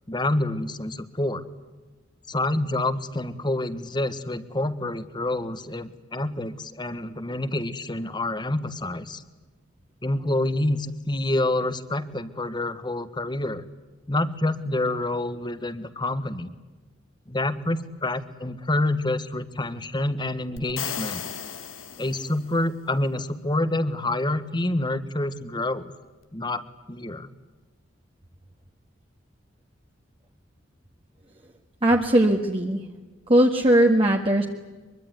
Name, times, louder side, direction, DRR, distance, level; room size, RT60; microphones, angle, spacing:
voice 1, 0.1-1.4 2.3-9.2 10.0-13.6 14.1-16.5 17.3-21.2 22.0-25.9 26.3-26.6 26.9-27.3, left 2 dB, 25° left, 12 dB, 1.5 m, -27 dB
sound 1, 20.6-22.6, left 8 dB, 90° left, 2.0 m, -35 dB
voice 2, 31.8-32.8 33.3-34.5, right 1 dB, 30° right, 1 dB, 1.8 m, -19 dB
24.0 x 23.5 x 9.5 m, 1.2 s
head